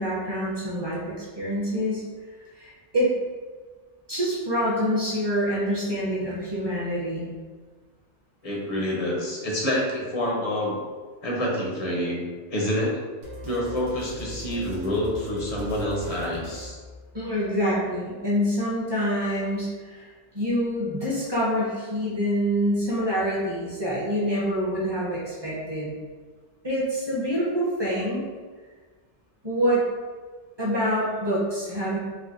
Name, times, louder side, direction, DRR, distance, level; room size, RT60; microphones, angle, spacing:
voice 1, 0.0-2.0 2.6-3.1 4.1-7.3 17.1-20.1 20.3-25.9 26.6-28.2 29.4-29.8 30.6-32.0, equal, 25° right, -7 dB, 0.6 m, -26 dB
voice 2, 8.4-10.8 11.2-12.2 12.5-13.0 13.4-16.8, left 1 dB, 40° left, -3 dB, 0.6 m, -27 dB
sound 1, 13.2-17.5, left 1 dB, 80° right, 1.1 m, -40 dB
4.3 x 2.0 x 2.5 m, 1.4 s
omnidirectional pair, 1.2 m